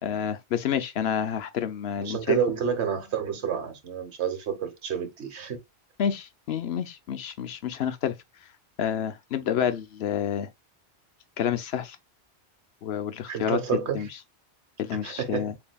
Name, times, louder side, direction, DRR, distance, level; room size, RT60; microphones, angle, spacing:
voice 1, 0.0-2.4 6.0-8.2 8.8-10.5 11.4-12.0 12.8-14.1 14.8-15.5, left 9 dB, 70° left, 0.9 m, -29 dB
voice 2, 2.0-5.6 13.3-14.1 15.0-15.5, right 7 dB, 75° right, 1.4 m, -29 dB
7.0 x 2.7 x 2.2 m
omnidirectional pair, 1.1 m